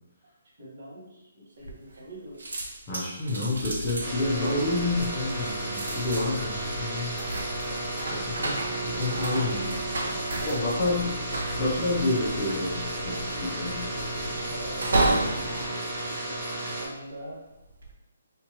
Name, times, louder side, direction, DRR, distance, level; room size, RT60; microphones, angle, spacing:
voice 1, 0.6-2.4 10.2-10.9 14.5-16.4 16.8-17.4, equal, 40° right, -6 dB, 1.4 m, -43 dB
sound 1, 1.6-2.1 2.4-16.9 17.5-17.9, right 2 dB, 75° right, 0.7 m, -33 dB
voice 2, 2.9-7.2 8.0-8.6 8.8-9.7 10.5-11.1 11.6-13.8, left 2 dB, 15° left, -8 dB, 0.7 m, -29 dB
sound 2, 3.5-15.7, left 1 dB, 45° left, 1.1 m, -40 dB
sound 3, 4.0-16.8, right 1 dB, 25° right, 1.0 m, -33 dB
3.6 x 2.8 x 3.0 m, 0.97 s
hypercardioid pair, 175°, 0 cm